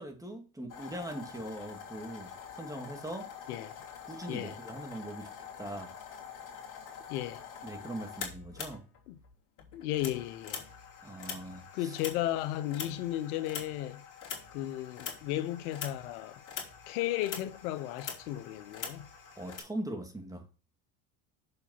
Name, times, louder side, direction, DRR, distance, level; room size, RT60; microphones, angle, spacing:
voice 1, 0.0-3.3 4.1-5.3 5.6-5.9 7.6-8.8 11.0-12.0 19.4-20.4, right 1 dB, 10° right, 2.3 m, -41 dB
sound 1, 0.7-9.3 9.6-19.6, left 7 dB, 45° left, 2.9 m, -45 dB
voice 2, 7.1-7.4 9.1-9.2 9.7-10.6 11.7-14.0 14.5-16.4 16.9-19.1, left 13 dB, 75° left, 1.0 m, -34 dB
6.8 x 5.7 x 5.6 m
hypercardioid pair, 90°, 44 cm